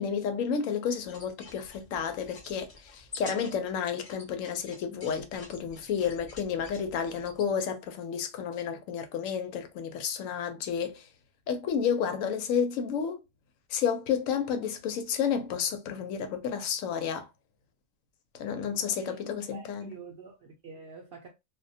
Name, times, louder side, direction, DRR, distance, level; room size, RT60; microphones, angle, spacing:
voice 1, 0.0-11.0 11.5-13.2 13.7-17.3 18.3-19.9, left 7 dB, 85° left, 1.0 m, -31 dB
sound 1, 1.0-7.5, left 3 dB, 35° left, 0.6 m, -48 dB
voice 2, 18.8-21.3, right 5 dB, 60° right, 0.6 m, -47 dB
2.3 x 2.1 x 2.6 m
omnidirectional pair, 1.3 m